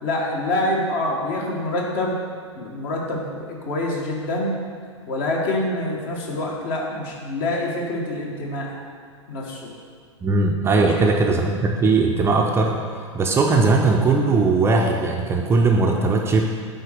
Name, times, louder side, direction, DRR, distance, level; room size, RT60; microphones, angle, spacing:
voice 1, 0.0-2.2 2.6-4.6 5.1-8.7 9.3-9.7 10.8-11.1, left 1 dB, 45° left, -1 dB, 1.8 m, -26 dB
voice 2, 10.2-12.8 13.1-16.4, right 3 dB, 15° right, 1 dB, 0.6 m, -19 dB
8.8 x 4.0 x 6.5 m, 2.1 s
figure-of-eight pair, 100°, 16 cm